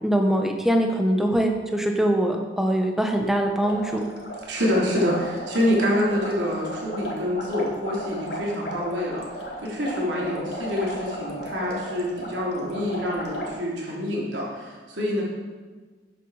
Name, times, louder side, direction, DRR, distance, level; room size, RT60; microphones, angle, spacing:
voice 1, 0.0-4.0, right 1 dB, ahead, 3 dB, 1.1 m, -23 dB
sound 1, 3.6-13.5, equal, 65° left, 2.3 m, -35 dB
voice 2, 4.5-15.2, left 1 dB, 85° right, -4 dB, 3.4 m, -26 dB
12.5 x 8.5 x 4.9 m, 1.4 s
head